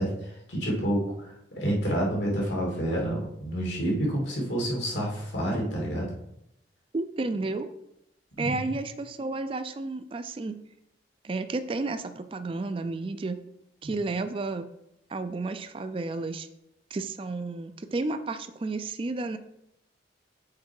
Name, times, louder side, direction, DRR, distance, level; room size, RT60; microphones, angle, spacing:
voice 1, 0.0-6.1 8.4-8.7 13.8-13.9, right 1 dB, 85° left, -3 dB, 2.5 m, -29 dB
voice 2, 6.9-7.7 8.4-10.6 11.2-13.4 13.8-14.7 15.1-16.5 16.9-19.4, right 3 dB, 30° right, 10 dB, 0.3 m, -32 dB
6.6 x 4.7 x 4.7 m, 0.82 s
head